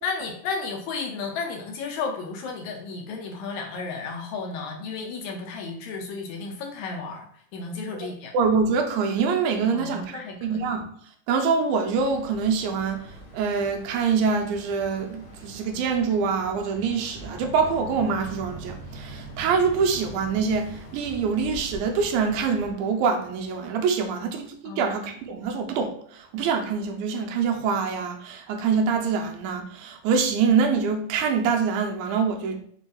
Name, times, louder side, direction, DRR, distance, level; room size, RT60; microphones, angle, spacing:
voice 1, 0.0-7.3 7.5-8.3 9.7-10.6 24.6-25.0, left 4 dB, 80° left, 2 dB, 1.8 m, -33 dB
voice 2, 8.3-10.9 11.3-13.0 13.3-32.6, right 5 dB, 80° right, 4 dB, 2.0 m, -25 dB
Boat Water vehicle, 11.9-22.7, right 2 dB, 50° left, 1.2 m, -42 dB
5.0 x 2.3 x 3.8 m, 0.62 s
omnidirectional pair, 3.7 m